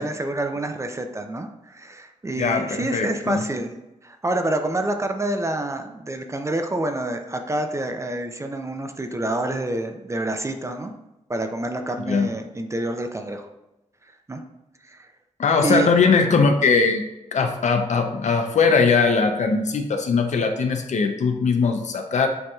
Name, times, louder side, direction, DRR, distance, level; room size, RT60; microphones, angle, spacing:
voice 1, 0.0-3.7 4.0-10.9 11.3-13.5 14.3-14.4 14.9-15.1 15.6-15.9, right 1 dB, 20° right, 6 dB, 0.5 m, -27 dB
voice 2, 2.4-3.4 12.0-12.3 15.4-17.0 17.3-22.3, left 4 dB, 65° left, 5 dB, 0.6 m, -20 dB
7.7 x 2.8 x 2.3 m, 0.96 s
cardioid pair, 70°, 13 cm